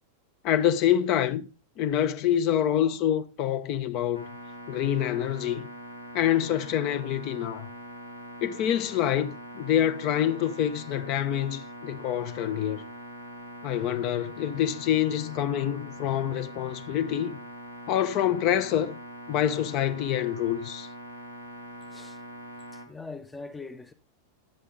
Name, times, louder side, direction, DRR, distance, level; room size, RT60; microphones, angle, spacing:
voice 1, 0.4-1.5 1.8-4.3 4.7-5.7 6.1-7.7 8.4-12.8 13.6-17.4 17.9-19.0 19.3-20.9, left 10 dB, 40° left, 0.8 m, -26 dB
sound 1, 4.1-22.9, equal, 90° left, 1.6 m, -43 dB
voice 2, 22.7-23.9, left 3 dB, 10° left, 0.7 m, -41 dB
10.5 x 7.7 x 3.7 m
figure-of-eight pair, 90°, 0 cm